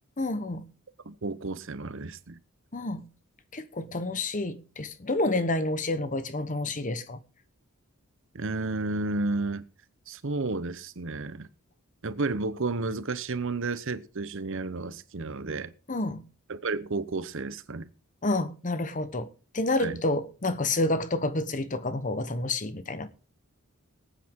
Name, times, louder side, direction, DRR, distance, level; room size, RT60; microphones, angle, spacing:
voice 1, 0.2-0.6 2.7-3.0 3.5-7.2 15.9-16.3 18.2-19.3 19.5-23.1, left 2 dB, 35° left, 1.0 m, -29 dB
voice 2, 1.0-2.4 8.3-9.6 10.1-11.5 12.0-15.7 16.5-17.9 19.8-20.0, right 3 dB, 60° right, 0.8 m, -32 dB
19.5 x 9.1 x 3.7 m
head